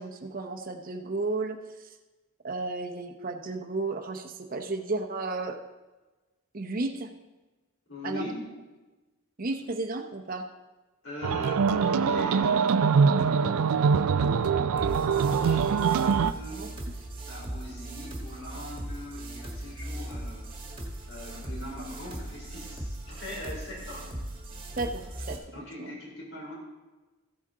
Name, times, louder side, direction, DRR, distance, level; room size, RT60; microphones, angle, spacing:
voice 1, 0.0-1.6 2.4-5.6 6.5-7.1 8.0-8.3 9.4-10.5 16.5-16.7 24.8-26.0, right 3 dB, 40° right, 5 dB, 0.8 m, -33 dB
voice 2, 7.9-8.4 11.0-16.7 17.2-24.2 25.5-26.5, left 1 dB, 60° left, -4 dB, 4.1 m, -41 dB
sound 1, 11.2-16.3, right 6 dB, 80° right, 0.4 m, -23 dB
sound 2, 14.8-25.4, right 1 dB, 25° right, 1.5 m, -38 dB
14.5 x 8.3 x 3.8 m, 1.2 s
head